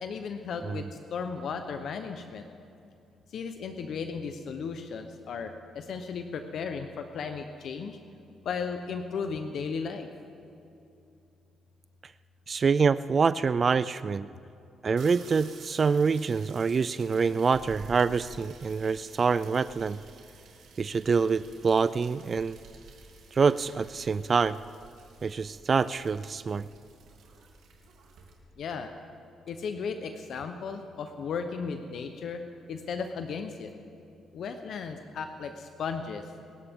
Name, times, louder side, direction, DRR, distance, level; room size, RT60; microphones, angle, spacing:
voice 1, 0.0-2.5 3.3-8.0 8.4-10.1 28.6-28.9 29.5-32.4 32.7-33.7 34.3-36.2, left 5 dB, 65° left, 6 dB, 0.9 m, -35 dB
voice 2, 12.5-14.3 14.8-20.0 20.8-22.6 23.3-24.6 25.2-26.7, right 5 dB, 40° right, 16 dB, 0.3 m, -26 dB
sound 1, 15.0-28.3, right 4 dB, 80° right, 3.2 m, -52 dB
26.5 x 14.0 x 3.7 m, 2.6 s
cardioid pair, 90°, 0 cm